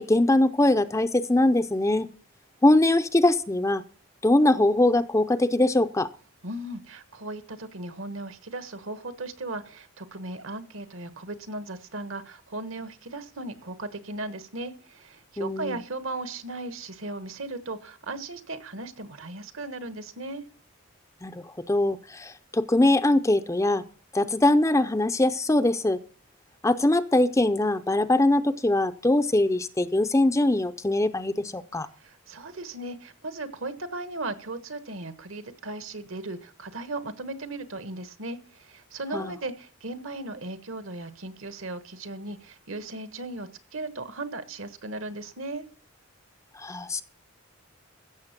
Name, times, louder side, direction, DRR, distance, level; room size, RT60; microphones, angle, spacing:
voice 1, 0.0-2.1 2.6-3.8 4.2-6.1 15.4-15.8 21.2-23.8 24.1-26.0 26.6-31.9 39.1-39.3 46.6-47.0, left 1 dB, 15° left, 11 dB, 0.5 m, -22 dB
voice 2, 6.4-20.4 32.0-45.6, right 2 dB, 65° right, 11 dB, 1.3 m, -37 dB
15.0 x 7.2 x 5.9 m, 0.40 s
head